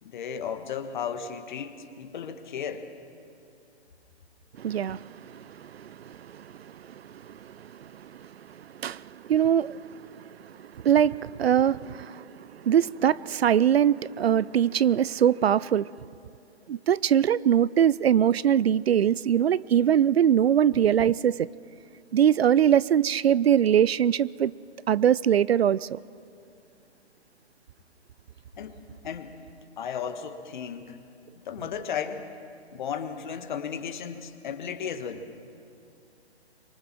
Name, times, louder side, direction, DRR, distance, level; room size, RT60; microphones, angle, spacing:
voice 1, 0.0-2.9 28.6-29.4 29.8-31.0 31.4-32.3 32.7-35.3, left 7 dB, 45° left, 1.6 m, -35 dB
voice 2, 4.6-15.9 16.7-21.5 22.1-24.5 24.9-26.0, right 9 dB, 65° right, 0.5 m, -23 dB
25.5 x 23.0 x 6.1 m
figure-of-eight pair, 135°, 33 cm